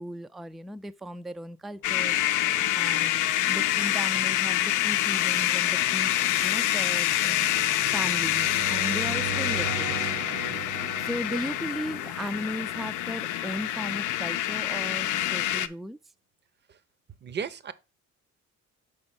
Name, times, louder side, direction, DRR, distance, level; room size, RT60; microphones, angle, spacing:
voice 1, 0.0-2.2 2.7-6.1 6.4-7.5 7.9-10.1 11.0-16.0, equal, ahead, 0.3 m, -36 dB
sound 1, 1.8-15.7, left 13 dB, 85° left, 0.5 m, -26 dB
sound 2, 2.6-13.4, right 7 dB, 70° right, 1.1 m, -40 dB
voice 2, 7.8-8.1 10.8-10.9 11.3-11.4 16.7-16.8 17.2-17.7, right 6 dB, 35° right, 0.6 m, -37 dB
6.4 x 4.2 x 4.1 m
cardioid pair, 90°, 30 cm